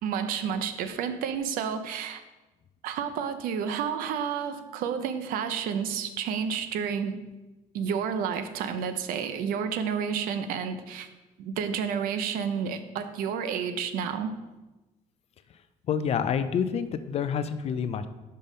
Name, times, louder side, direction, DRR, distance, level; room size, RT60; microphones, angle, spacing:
voice 1, 0.0-2.2 2.8-7.2 7.7-11.1 11.4-14.3, right 7 dB, 90° right, 10 dB, 0.6 m, -30 dB
voice 2, 15.9-18.1, left 7 dB, 45° left, 12 dB, 0.5 m, -28 dB
5.6 x 5.2 x 5.3 m, 1.1 s
cardioid pair, 130°, 14 cm